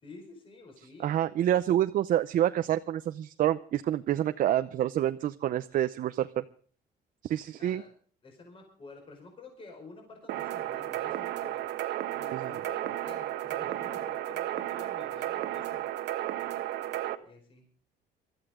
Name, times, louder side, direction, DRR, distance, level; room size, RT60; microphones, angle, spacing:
voice 1, 0.0-1.1 7.6-7.9 8.2-11.7 12.1-15.8 16.9-17.6, left 3 dB, 30° left, 3 dB, 4.8 m, -50 dB
voice 2, 1.0-6.4 7.2-7.8 12.3-12.5, right 12 dB, 55° right, 9 dB, 0.7 m, -27 dB
sound 1, 10.3-17.1, right 13 dB, 85° right, 1.3 m, -33 dB
23.5 x 13.5 x 3.7 m, 0.43 s
cardioid pair, 165°, 17 cm